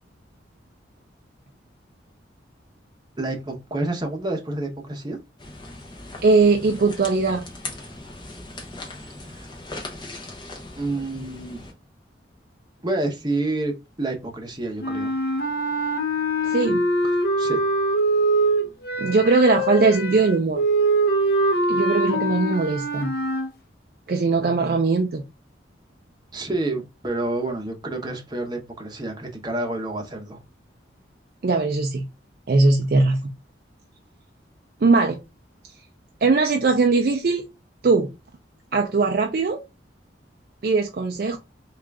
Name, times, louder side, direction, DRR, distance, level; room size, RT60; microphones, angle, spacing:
voice 1, 3.2-5.2 9.3-9.5 10.8-11.6 12.8-15.1 17.0-17.6 26.3-30.4, right 2 dB, 20° right, 0.8 m, -29 dB
sound 1, 5.4-11.7, left 2 dB, 25° left, 0.8 m, -39 dB
voice 2, 6.2-7.5 16.4-16.9 19.0-20.6 21.7-23.1 24.1-25.2 31.4-32.1 32.5-33.3 34.8-35.2 36.2-37.5 37.8-38.1 38.7-39.6 40.6-41.4, right 3 dB, 50° right, 0.4 m, -20 dB
sound 2, 14.8-23.5, right 1 dB, 55° left, 0.7 m, -23 dB
3.6 x 2.4 x 3.2 m
head